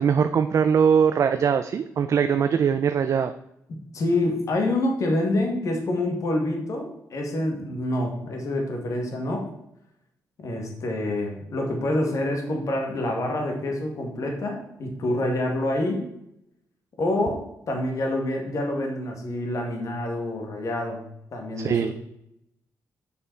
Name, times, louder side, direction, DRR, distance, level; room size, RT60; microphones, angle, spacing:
voice 1, 0.0-3.3 21.6-21.9, right 7 dB, 55° right, 9 dB, 0.4 m, -21 dB
voice 2, 3.9-9.5 10.4-16.0 17.0-21.0 21.3-21.9, left 1 dB, 55° left, 2 dB, 1.8 m, -27 dB
6.7 x 5.4 x 4.6 m, 0.79 s
cardioid pair, 115°, 7 cm